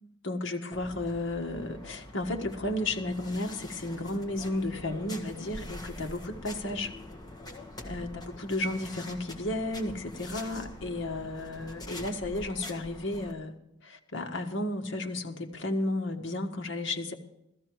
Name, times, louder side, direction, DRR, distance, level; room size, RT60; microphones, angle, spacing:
voice 1, 0.0-6.9 7.8-13.5 13.8-17.1, left 2 dB, 75° left, 3 dB, 1.5 m, -33 dB
sound 1, 0.7-13.3, left 1 dB, 20° left, 1.7 m, -44 dB
15.5 x 14.0 x 4.7 m, 0.84 s
head